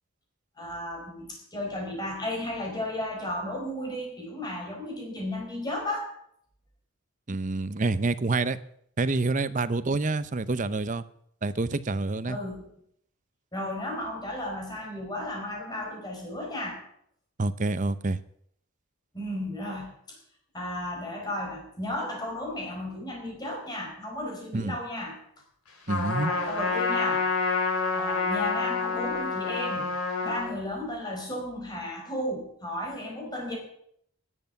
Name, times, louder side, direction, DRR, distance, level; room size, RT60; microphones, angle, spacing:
voice 1, 0.6-6.1 12.3-12.7 13.5-16.8 19.1-20.2 20.5-25.1 26.1-27.2 27.9-29.9 30.2-33.6, left 1 dB, 20° left, -1 dB, 4.7 m, -34 dB
voice 2, 7.3-8.6 9.0-11.0 11.4-12.4 17.4-18.2 24.5-24.8 25.9-26.4, right 3 dB, 35° right, 14 dB, 0.6 m, -27 dB
Trumpet, 25.9-30.5, left 4 dB, 85° left, 3.4 m, -28 dB
11.0 x 8.0 x 9.7 m, 0.69 s
head